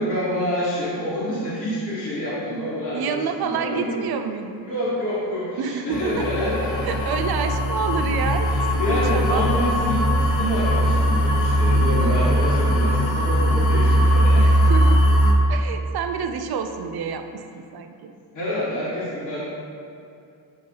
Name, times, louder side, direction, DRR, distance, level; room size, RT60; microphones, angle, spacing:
voice 1, 0.0-4.0 4.7-6.9 8.5-14.4 18.3-19.4, equal, 45° left, -10 dB, 1.4 m, -27 dB
voice 2, 2.9-4.7 5.6-6.3 6.8-8.5 8.9-9.5 14.4-15.2 15.5-18.1, right 6 dB, 60° right, 7 dB, 0.5 m, -28 dB
sound 1, 5.9-15.3, equal, 65° left, 0.8 m, -20 dB
8.5 x 2.9 x 4.6 m, 2.5 s
wide cardioid pair, 160°, 43 cm